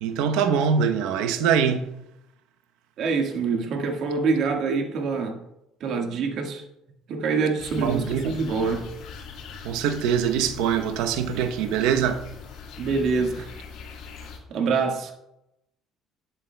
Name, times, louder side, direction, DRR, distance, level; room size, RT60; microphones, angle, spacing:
voice 1, 0.0-1.9 7.8-8.4 9.6-12.2, right 7 dB, 85° right, 0.8 m, -23 dB
voice 2, 3.0-5.4 5.8-6.6 7.1-8.9 12.8-13.5 14.5-15.1, right 4 dB, 60° right, 1.6 m, -25 dB
sound 1, 7.6-14.4, left 5 dB, 70° left, 3.7 m, -41 dB
11.5 x 10.0 x 2.2 m
cardioid pair, 110°, 0 cm